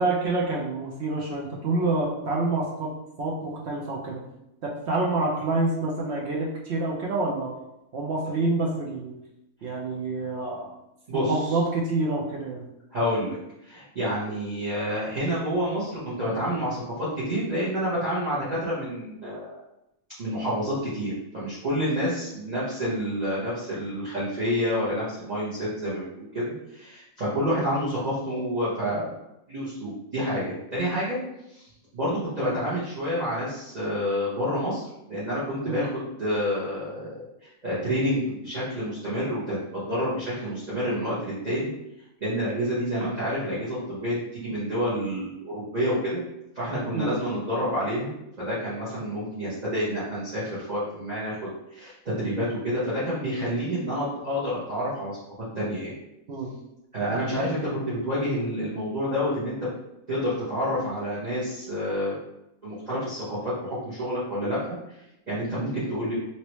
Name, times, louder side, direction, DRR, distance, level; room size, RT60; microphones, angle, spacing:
voice 1, 0.0-2.9 3.2-4.2 4.6-7.6 7.9-9.1 9.6-10.7 11.1-12.7 35.7-35.9 46.9-47.1 56.3-56.5, right 2 dB, 60° right, -3 dB, 0.8 m, -27 dB
voice 2, 11.1-11.6 12.9-13.4 13.6-19.6 20.2-29.1 29.5-31.2 31.5-31.7 31.9-41.7 42.2-46.2 46.5-48.1 48.4-51.4 51.7-55.2 55.5-55.9 56.9-59.6 60.1-62.2 62.6-66.1, equal, 30° right, -11 dB, 1.1 m, -28 dB
3.0 x 2.8 x 3.0 m, 0.86 s
omnidirectional pair, 1.6 m